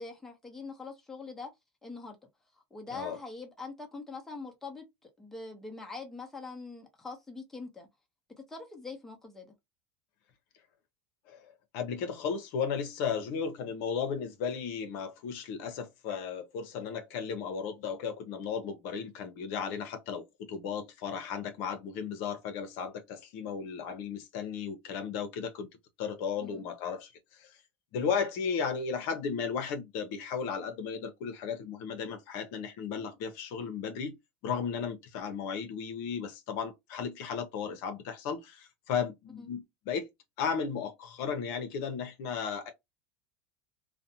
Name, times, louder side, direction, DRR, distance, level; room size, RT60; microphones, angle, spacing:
voice 1, 0.0-1.5 1.8-2.2 2.7-7.9 8.5-9.5 26.4-26.7 39.4-39.5, left 3 dB, 5° left, 0.8 m, -43 dB
voice 2, 11.3-25.7 26.0-27.6 27.9-34.1 34.4-40.1 40.4-42.7, left 6 dB, 65° left, 0.7 m, -35 dB
2.5 x 2.1 x 2.7 m
supercardioid pair, 130°, 5 cm